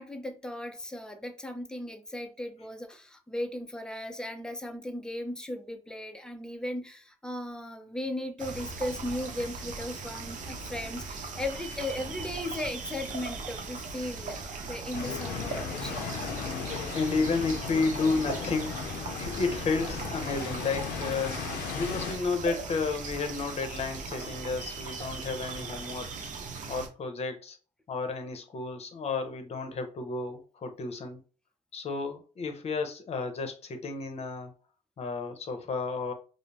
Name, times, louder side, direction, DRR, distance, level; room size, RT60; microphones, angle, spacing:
voice 1, 0.0-16.1, left 1 dB, 5° left, 0.5 m, -37 dB
sound 1, 8.4-26.9, right 4 dB, 65° right, 0.6 m, -39 dB
sound 2, 14.9-22.1, left 6 dB, 90° left, 0.5 m, -36 dB
voice 2, 16.9-18.8 19.2-26.3 26.7-27.6 27.9-31.2 31.7-34.5 35.0-36.1, left 4 dB, 50° left, 0.7 m, -32 dB
2.5 x 2.0 x 3.2 m
supercardioid pair, 70°, 14 cm